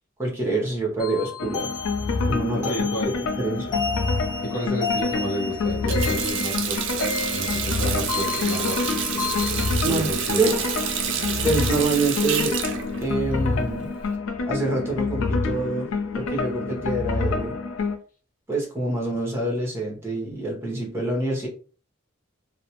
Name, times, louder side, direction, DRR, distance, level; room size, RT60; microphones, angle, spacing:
voice 1, 0.2-1.7 2.3-2.7 3.1-3.8 9.8-10.1 10.4-10.6 11.4-12.6 13.0-13.9 14.5-15.9 16.1-17.6 18.5-21.5, right 2 dB, 10° right, -2 dB, 0.8 m, -26 dB
sound 1, 1.0-9.7, left 5 dB, 20° left, 0.5 m, -32 dB
sound 2, 1.4-18.0, left 4 dB, 80° left, 0.4 m, -27 dB
voice 2, 2.5-3.1 4.4-7.0 7.3-9.0 9.9-10.5, right 1 dB, 45° left, -1 dB, 0.8 m, -31 dB
Water tap faucet, 5.7-14.1, right 7 dB, 65° right, 0.4 m, -29 dB
2.4 x 2.0 x 2.8 m, 0.39 s
head